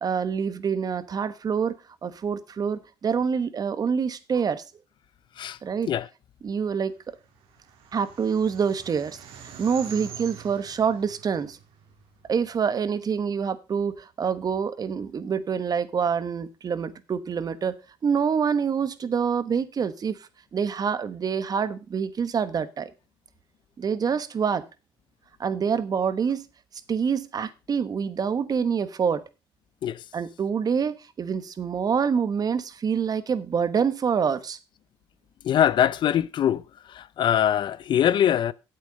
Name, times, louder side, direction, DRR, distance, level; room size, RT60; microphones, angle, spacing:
voice 1, 0.0-4.6 5.6-5.9 6.4-7.2 7.9-9.2 9.6-11.6 12.3-22.9 23.8-24.7 25.4-26.4 26.9-29.2 30.1-34.6, right 6 dB, 45° right, 1.1 m, -26 dB
sound 1, 7.1-12.5, right 8 dB, 75° right, 2.1 m, -45 dB
voice 2, 35.4-36.6 36.9-38.5, left 10 dB, 55° left, 0.5 m, -22 dB
8.8 x 8.1 x 5.2 m
supercardioid pair, 75°, 9 cm